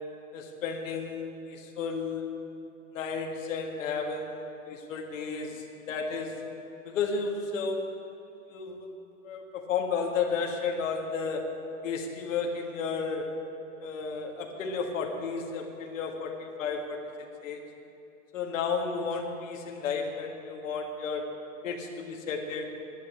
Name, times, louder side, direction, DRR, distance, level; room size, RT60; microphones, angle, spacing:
voice 1, 0.3-2.3 2.9-6.4 6.9-7.9 8.4-8.9 9.2-11.6 11.8-13.3 13.8-17.6 18.3-21.3 21.6-22.6, left 5 dB, 65° left, 2 dB, 1.9 m, -33 dB
11.5 x 9.7 x 8.6 m, 2.8 s
supercardioid pair, 175°, 42 cm